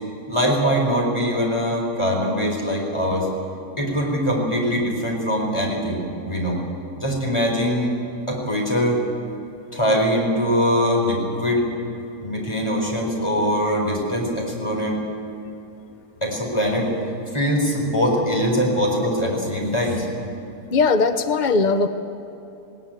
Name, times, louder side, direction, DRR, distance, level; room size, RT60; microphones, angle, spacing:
voice 1, 0.3-3.3 3.8-6.6 7.0-7.9 8.3-9.0 9.7-11.6 12.2-15.0 16.2-16.9 17.3-20.1, equal, 15° left, -1 dB, 4.4 m, -22 dB
voice 2, 20.7-21.9, left 4 dB, 60° left, 9 dB, 0.4 m, -19 dB
19.0 x 18.5 x 9.1 m, 2.9 s
omnidirectional pair, 1.8 m